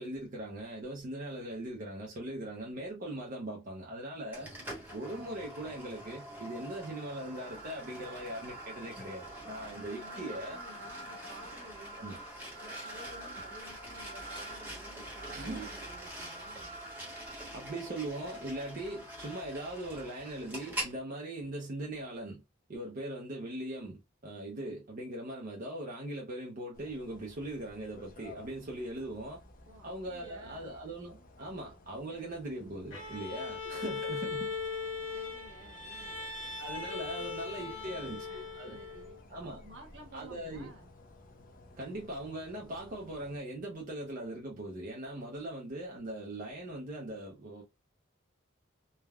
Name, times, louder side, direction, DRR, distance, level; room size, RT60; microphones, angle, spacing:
voice 1, 0.0-4.5 4.9-10.6 12.0-12.2 15.3-15.8 17.5-22.4 22.7-29.4 29.8-34.5 35.9-36.0 36.6-38.8 39.3-39.6 40.1-40.7 41.8-47.6, right 1 dB, 45° right, 0.5 m, -40 dB
sound 1, 4.3-21.0, right 1 dB, 10° right, 1.0 m, -44 dB
voice 2, 9.8-12.2 12.6-16.8 29.7-30.7 32.1-32.4 35.1-36.4 37.2-37.3 37.5-40.9, right 1 dB, 70° right, 1.1 m, -54 dB
sound 2, 26.7-43.4, left 2 dB, 45° left, 0.5 m, -56 dB
Bowed string instrument, 32.9-39.2, left 4 dB, 80° left, 1.2 m, -39 dB
3.3 x 2.1 x 2.3 m
head